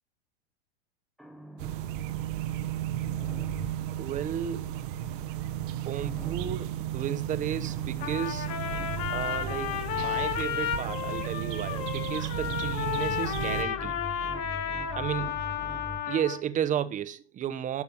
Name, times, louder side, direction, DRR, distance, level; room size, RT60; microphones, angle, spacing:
sound 1, 1.2-3.9 6.0-6.8 7.7-10.6 12.3-16.2, right 1 dB, ahead, 0.9 m, -42 dB
sound 2, 1.6-13.6, right 12 dB, 55° right, 1.1 m, -34 dB
voice 1, 3.9-4.8 5.7-8.5 9.1-14.0 14.9-15.4 16.1-17.8, right 9 dB, 25° right, 1.0 m, -33 dB
Trumpet, 8.0-16.4, left 10 dB, 40° left, 2.3 m, -33 dB
12.0 x 6.9 x 5.6 m
hypercardioid pair, 115°, 33 cm